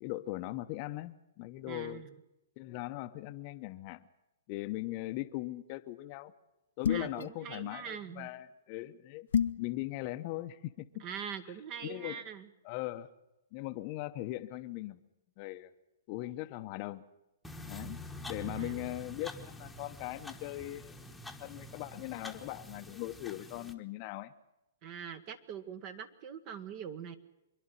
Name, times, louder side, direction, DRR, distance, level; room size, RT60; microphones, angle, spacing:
voice 1, 0.0-2.0 2.6-4.0 4.5-6.3 6.8-9.3 9.6-11.0 11.8-12.2 12.6-13.1 13.5-15.0 15.4-15.7 16.1-17.0 17.7-18.0 18.3-21.1 21.4-24.3, left 17 dB, 40° left, 9 dB, 0.9 m, -39 dB
voice 2, 1.7-2.1 6.9-8.3 11.0-12.5 18.4-18.9 24.8-27.1, right 7 dB, 35° right, 10 dB, 1.3 m, -43 dB
sound 1, 6.8-7.2 9.3-9.7, left 8 dB, 70° left, 0.7 m, -28 dB
sound 2, 17.4-23.7, equal, 5° left, 1.3 m, -46 dB
26.0 x 11.0 x 9.8 m, 0.94 s
hypercardioid pair, 125°, 0 cm